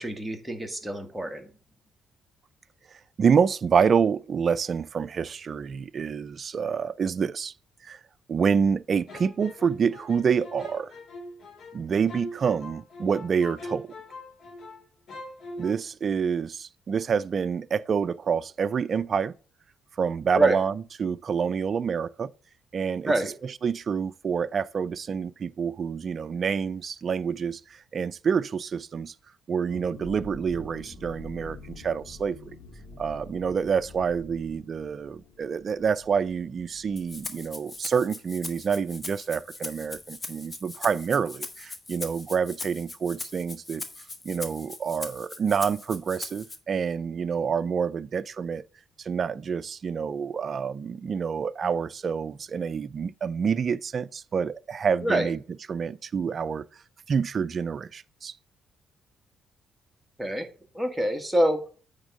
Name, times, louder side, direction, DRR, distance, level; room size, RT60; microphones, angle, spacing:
voice 1, 0.0-1.5 20.3-20.6 23.0-23.3 55.0-55.3 60.2-60.5 60.7-61.6, right 1 dB, 5° right, 1.5 m, -26 dB
voice 2, 3.2-7.5 7.8-8.0 8.3-10.9 11.7-13.9 15.6-19.3 20.0-20.7 21.0-22.3 22.7-23.1 23.6-29.1 29.5-32.5 33.0-43.8 44.2-48.6 49.0-55.4 55.7-56.6 57.1-58.3, right 6 dB, 50° right, 0.4 m, -27 dB
sound 1, 9.1-14.8 15.1-15.7, left 1 dB, 60° left, 2.2 m, -41 dB
sound 2, 29.6-39.1 39.3-39.4 39.7-40.0, left 2 dB, 75° left, 1.9 m, -47 dB
Rattle (instrument), 37.0-46.6, left 3 dB, 30° left, 1.1 m, -40 dB
8.8 x 3.5 x 5.3 m
cardioid pair, 90°, 0 cm